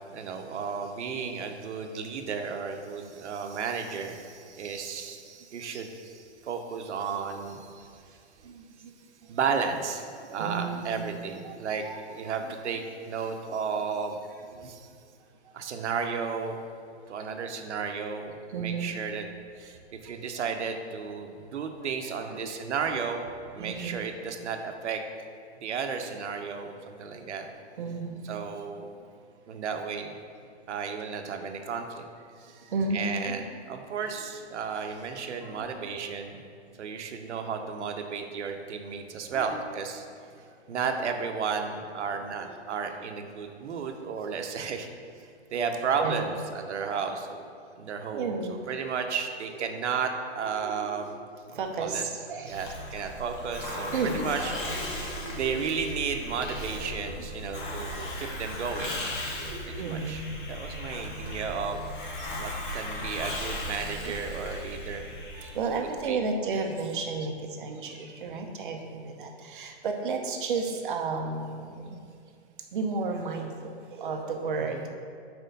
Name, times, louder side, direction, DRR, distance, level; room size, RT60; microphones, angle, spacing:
voice 1, 0.1-7.9 9.3-14.2 14.6-14.8 15.5-16.6 17.1-19.3 19.6-19.8 20.0-23.3 23.5-25.0 25.6-27.5 28.2-28.9 29.5-30.1 30.7-32.0 32.9-36.4 36.8-40.0 40.7-44.9 45.5-47.4 47.8-48.4 48.7-51.2 51.5-54.7 55.3-58.9 59.6-61.8 62.2-65.0 66.1-66.2 66.5-66.6 74.6-74.9, right 6 dB, 85° right, 5 dB, 0.8 m, -33 dB
voice 2, 8.0-9.6 10.2-13.4 13.7-13.8 14.2-14.7 15.4-15.9 17.0-17.5 18.5-19.0 19.6-19.7 20.0-20.5 21.8-23.0 23.6-24.1 27.7-28.3 32.2-33.4 33.9-34.8 35.4-35.7 39.3-39.6 40.2-40.5 42.5-42.6 44.8-44.9 45.2-45.3 45.5-45.7 46.0-46.3 46.6-46.7 48.1-48.7 49.4-49.7 50.4-51.1 51.4-52.8 53.9-55.6 57.2-58.0 59.4-60.5 61.0-61.1 62.0-63.4 64.0-64.1 65.3-72.0 72.7-74.9, right 4 dB, 50° right, 3 dB, 0.7 m, -35 dB
Hiss, 52.5-66.0, left 1 dB, 45° left, 1.0 m, -37 dB
4.4 x 4.4 x 5.2 m, 2.3 s
hypercardioid pair, 175°, 34 cm